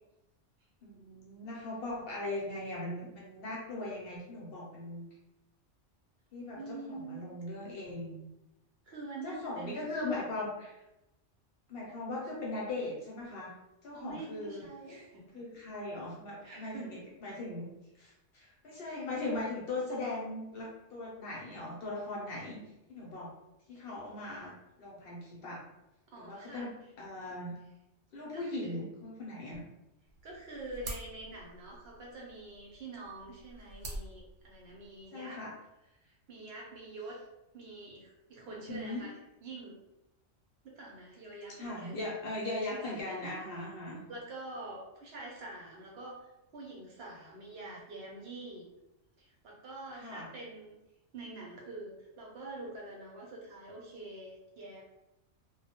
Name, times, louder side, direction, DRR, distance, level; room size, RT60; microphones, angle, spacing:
voice 1, 0.8-5.0 6.3-8.2 9.2-10.8 11.7-13.5 13.8-14.6 15.3-17.6 18.0-22.6 22.9-23.3 23.7-25.6 26.2-26.7 27.0-27.5 28.1-29.6 35.1-35.5 38.5-39.1 41.6-44.0 50.0-50.3, left 2 dB, 60° left, -3 dB, 0.7 m, -39 dB
voice 2, 6.6-7.3 8.8-10.1 11.9-12.0 13.9-15.4 16.4-17.0 19.0-19.1 26.1-26.7 27.3-27.4 28.3-28.9 30.2-35.4 35.9-37.2 37.5-39.1 39.4-39.8 40.6-42.0 42.7-43.0 44.1-46.3 46.5-48.7 49.2-50.8 51.1-54.8, right 2 dB, 65° right, -2 dB, 0.7 m, -46 dB
sound 1, 30.1-35.1, right 2 dB, 85° right, 1.0 m, -47 dB
2.2 x 2.0 x 2.8 m, 0.91 s
omnidirectional pair, 1.3 m